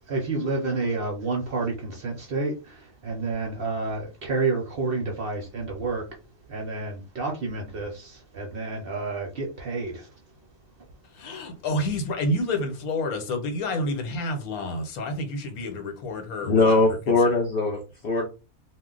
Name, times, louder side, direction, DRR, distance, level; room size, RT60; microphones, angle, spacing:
voice 1, 0.1-6.1 6.5-10.1, right 3 dB, 55° right, 0.6 m, -29 dB
voice 2, 11.1-17.2, left 1 dB, 80° left, 1.2 m, -29 dB
voice 3, 16.4-18.3, left 3 dB, 60° left, 0.6 m, -21 dB
2.3 x 2.1 x 3.7 m
omnidirectional pair, 1.5 m